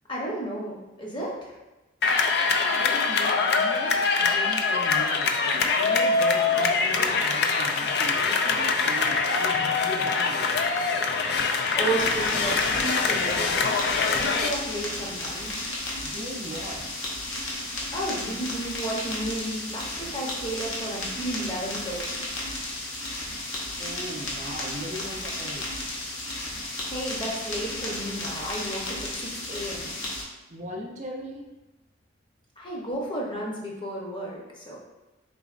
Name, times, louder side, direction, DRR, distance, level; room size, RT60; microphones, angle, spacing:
voice 1, 0.1-1.6 11.4-15.6 17.9-22.2 26.9-29.9 32.6-34.8, right 1 dB, 25° left, -3 dB, 0.7 m, -33 dB
sound 1, 2.0-14.5, left 4 dB, 55° left, 0.3 m, -24 dB
voice 2, 2.7-10.5 16.0-16.8 23.8-25.9 30.5-31.5, equal, 40° right, -1 dB, 0.5 m, -38 dB
sound 2, 12.0-30.2, left 1 dB, 80° left, 1.0 m, -34 dB
4.0 x 4.0 x 2.4 m, 1.1 s
head